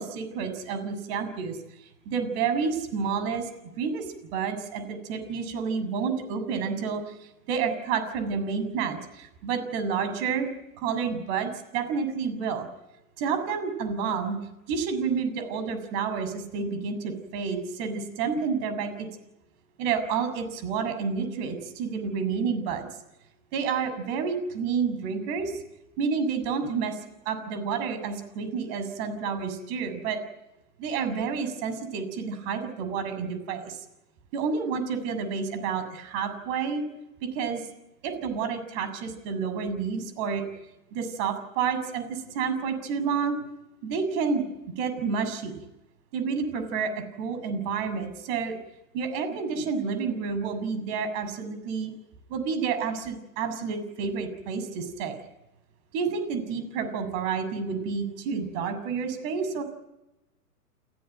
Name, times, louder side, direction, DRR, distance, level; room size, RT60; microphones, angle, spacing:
voice 1, 0.0-3.5 3.8-10.5 10.8-12.7 13.2-14.4 14.7-19.1 19.8-22.9 23.5-25.6 26.0-27.0 27.3-30.2 30.8-33.8 34.3-36.8 37.3-37.6 38.0-40.4 40.9-43.4 43.8-44.4 44.8-45.5 46.1-48.6 48.9-51.9 52.3-55.1 55.9-59.6, right 5 dB, 40° right, 9 dB, 7.1 m, -29 dB
29.5 x 16.5 x 9.3 m, 0.96 s
hypercardioid pair, 125°, 46 cm